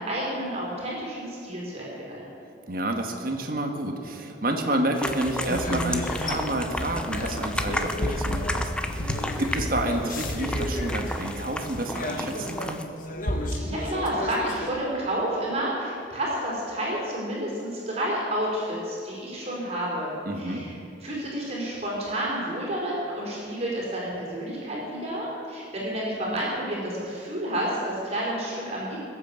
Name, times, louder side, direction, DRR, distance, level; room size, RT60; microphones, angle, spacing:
voice 1, 0.0-2.3 13.6-20.7 21.0-29.0, right 1 dB, 35° right, -4 dB, 4.6 m, -30 dB
voice 2, 2.7-12.9 20.2-20.6, right 1 dB, 50° right, 4 dB, 1.7 m, -29 dB
sound 1, 4.9-12.8, left 1 dB, 5° left, 0.7 m, -34 dB
sound 2, 5.0-14.7, left 1 dB, 45° left, 1.4 m, -31 dB
21.0 x 8.3 x 7.3 m, 2.9 s
head